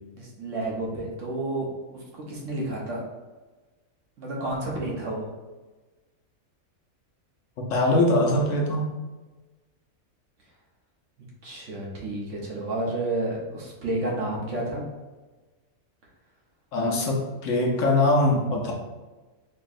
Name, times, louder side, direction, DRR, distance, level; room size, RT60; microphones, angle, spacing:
voice 1, 0.1-1.7 1.9-3.0 4.2-5.3 11.4-14.9, right 1 dB, 65° right, -3 dB, 1.2 m, -30 dB
voice 2, 7.7-8.9 16.7-18.7, left 2 dB, 70° left, 0 dB, 1.0 m, -22 dB
4.4 x 3.0 x 2.5 m, 1.2 s
omnidirectional pair, 1.4 m